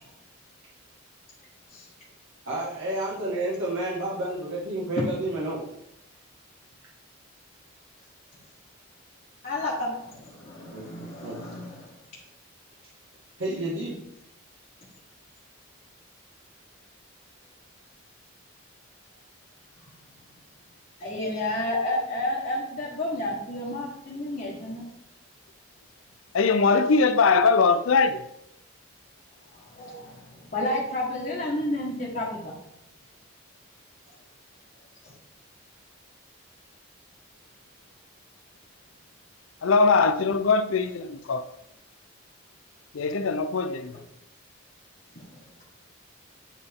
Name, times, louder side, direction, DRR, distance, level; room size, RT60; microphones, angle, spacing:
voice 1, 2.4-5.6 10.5-10.8 11.2-11.3 13.4-14.0, right 1 dB, 75° right, 1.6 m, -30 dB
voice 2, 9.4-11.9 21.0-24.9 29.5-32.6 45.3-45.6, left 1 dB, 45° left, 1.6 m, -31 dB
voice 3, 26.3-28.2 39.6-41.5 42.9-44.0, left 4 dB, 75° left, 0.5 m, -21 dB
10.0 x 3.8 x 3.7 m
head